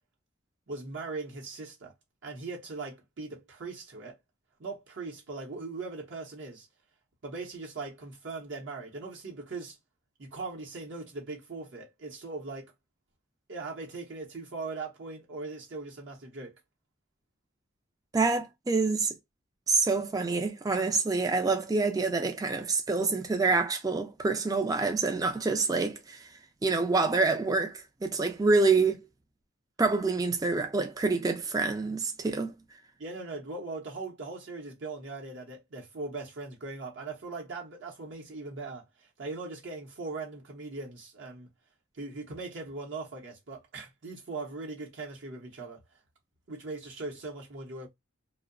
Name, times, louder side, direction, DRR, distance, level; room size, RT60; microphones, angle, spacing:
voice 1, 0.7-1.9 2.2-4.2 4.6-6.7 7.2-9.8 10.2-12.7 13.5-16.6 33.0-41.5 41.9-45.8 46.5-47.9, right 3 dB, 60° right, 0.7 m, -40 dB
voice 2, 18.1-19.1 19.7-26.3 26.6-29.0 29.8-32.5, right 3 dB, 15° right, 0.3 m, -27 dB
2.6 x 2.0 x 2.4 m
head